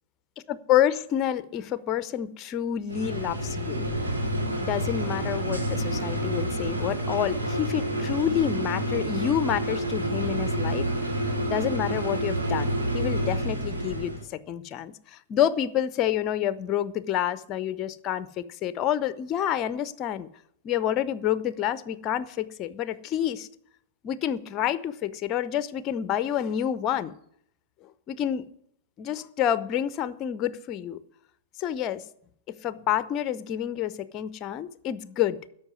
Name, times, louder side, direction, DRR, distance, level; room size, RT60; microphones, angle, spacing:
voice 1, 0.5-3.8 4.6-10.9 11.5-20.3 20.6-23.5 24.0-27.1 28.1-28.4 29.0-31.0 31.6-32.0 32.6-35.4, left 10 dB, 35° left, 15 dB, 0.7 m, -28 dB
sound 1, 2.9-14.2, right 1 dB, 80° right, 2.5 m, -28 dB
13.0 x 5.8 x 9.4 m, 0.69 s
figure-of-eight pair, 100°, 0 cm